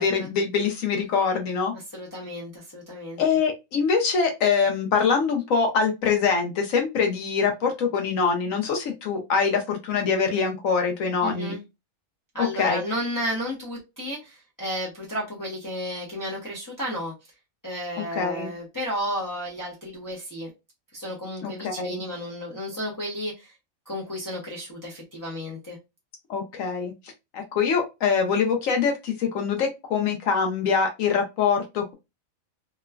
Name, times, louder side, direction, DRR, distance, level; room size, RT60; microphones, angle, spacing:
voice 1, 0.0-1.7 3.2-11.6 12.4-12.8 18.0-18.5 21.4-22.0 26.3-26.9 27.3-31.9, left 5 dB, 75° left, 1.0 m, -24 dB
voice 2, 1.9-3.2 11.2-11.6 12.3-17.1 17.6-20.5 20.9-23.5 23.9-25.8, equal, 20° left, 0.5 m, -33 dB
2.9 x 2.2 x 2.3 m
omnidirectional pair, 1.4 m